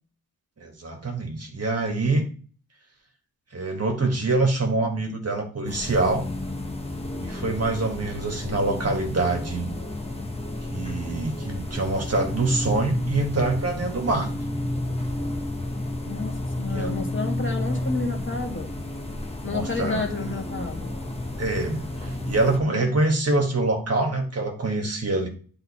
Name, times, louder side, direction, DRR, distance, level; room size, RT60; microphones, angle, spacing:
voice 1, 0.6-2.3 3.5-6.3 7.2-9.7 10.7-14.3 16.7-17.1 19.4-20.0 21.4-25.3, right 2 dB, 40° right, 3 dB, 2.0 m, -25 dB
sound 1, 5.7-22.6, left 1 dB, 15° left, 1.3 m, -31 dB
voice 2, 16.1-18.7 19.4-20.9 22.7-22.8, left 3 dB, 30° left, 2 dB, 2.0 m, -30 dB
10.5 x 4.0 x 4.3 m, 0.40 s
wide cardioid pair, 135°, 37 cm